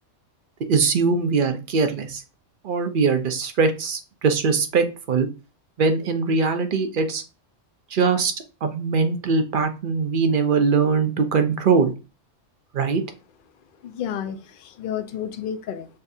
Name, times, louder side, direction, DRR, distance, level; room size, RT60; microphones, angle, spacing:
voice 1, 0.7-2.2 2.6-5.3 5.8-7.2 7.9-8.3 8.6-11.9 12.7-13.0, right 5 dB, 55° right, 7 dB, 0.6 m, -21 dB
voice 2, 13.8-15.9, left 9 dB, 60° left, 8 dB, 0.6 m, -31 dB
6.5 x 2.4 x 2.6 m, 0.32 s
omnidirectional pair, 1.3 m